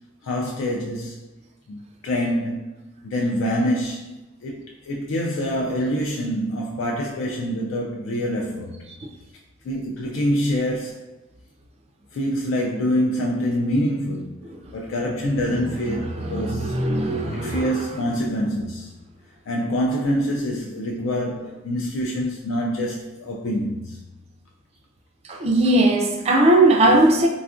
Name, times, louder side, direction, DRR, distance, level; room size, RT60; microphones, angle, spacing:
voice 1, 0.2-1.3 1.7-2.7 3.0-8.8 9.6-11.1 12.1-14.4 14.7-16.8 17.3-19.0 19.5-24.0, equal, 90° left, 0.3 m, -25 dB
voice 2, 16.3-17.7 25.3-27.3, right 1 dB, 30° right, 0.3 m, -18 dB
3.4 x 2.3 x 2.4 m
head